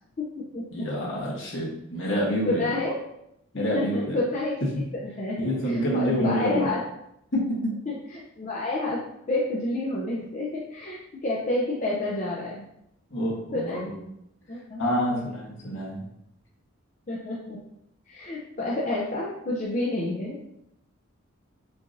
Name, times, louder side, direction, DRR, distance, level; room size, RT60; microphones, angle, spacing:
voice 1, 0.2-0.9 2.4-3.0 3.5-6.8 7.9-9.0 9.3-12.6 13.5-13.8 14.5-15.2 17.1-17.6 18.1-20.5, left 2 dB, 35° left, -4 dB, 0.4 m, -30 dB
voice 2, 0.7-2.7 3.5-4.2 5.4-6.7 7.3-7.7 13.1-13.9 14.8-16.1, equal, 60° left, -4 dB, 1.1 m, -27 dB
4.5 x 2.5 x 2.5 m, 0.79 s
head